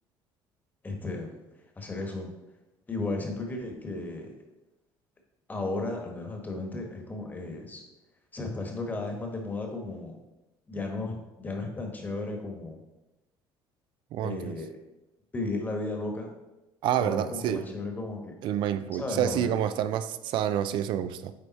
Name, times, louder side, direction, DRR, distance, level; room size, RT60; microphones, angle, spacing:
voice 1, 0.8-1.4 1.8-2.3 2.9-4.3 5.5-7.8 8.3-10.2 10.7-12.8 14.2-14.7 15.3-16.3 17.0-18.3 18.9-19.5, left 2 dB, 20° left, 3 dB, 1.2 m, -34 dB
voice 2, 14.1-14.5 16.8-17.6 18.4-21.3, right 10 dB, 65° right, 13 dB, 0.4 m, -28 dB
9.0 x 3.4 x 4.1 m, 1.0 s
cardioid pair, 135°, 9 cm